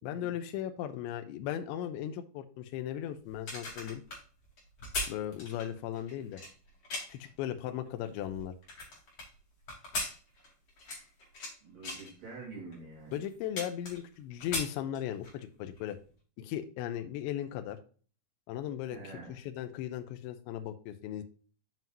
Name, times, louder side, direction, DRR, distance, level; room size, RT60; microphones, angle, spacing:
voice 1, 0.0-4.0 5.1-6.4 7.1-8.5 13.1-16.0 16.4-17.8 18.5-19.0 19.5-21.2, left 11 dB, 80° left, 7 dB, 3.0 m, -37 dB
sound 1, 3.3-7.3 7.9-9.3 9.7-11.5 11.8-12.1 12.7-12.8 13.1-14.1 14.4-15.4 15.8-15.9, left 2 dB, 35° left, 3.4 m, -39 dB
voice 2, 11.6-13.2 18.9-19.5, right 3 dB, 50° right, -4 dB, 3.9 m, -47 dB
7.6 x 7.5 x 2.6 m, 0.39 s
omnidirectional pair, 5.4 m